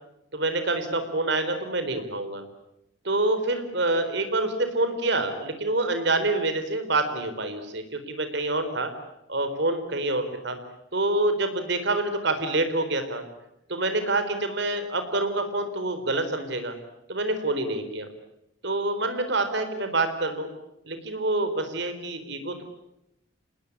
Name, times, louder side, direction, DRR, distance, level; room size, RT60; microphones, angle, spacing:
voice 1, 0.3-2.4 3.0-8.9 9.3-10.6 10.9-13.2 13.7-16.7 17.1-18.1 18.6-20.5 20.8-22.6, right 2 dB, 65° right, 9 dB, 4.2 m, -27 dB
27.5 x 20.5 x 10.0 m, 0.85 s
head